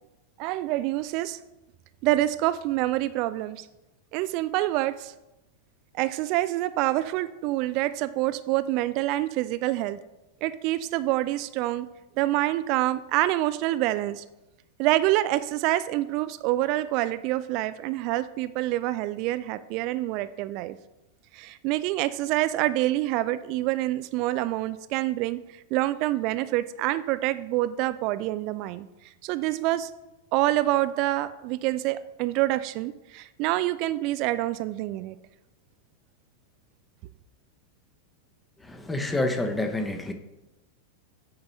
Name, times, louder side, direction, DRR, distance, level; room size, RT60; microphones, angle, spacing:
voice 1, 0.4-1.4 2.0-3.7 4.1-5.1 6.0-10.0 10.4-11.9 12.2-14.2 14.8-20.8 21.3-25.4 25.7-28.9 29.2-29.9 30.3-35.2, right 16 dB, 45° right, 14 dB, 0.3 m, -26 dB
voice 2, 38.7-40.1, left 2 dB, 10° left, 6 dB, 0.9 m, -28 dB
8.7 x 4.0 x 5.5 m, 0.99 s
figure-of-eight pair, 90°, 0 cm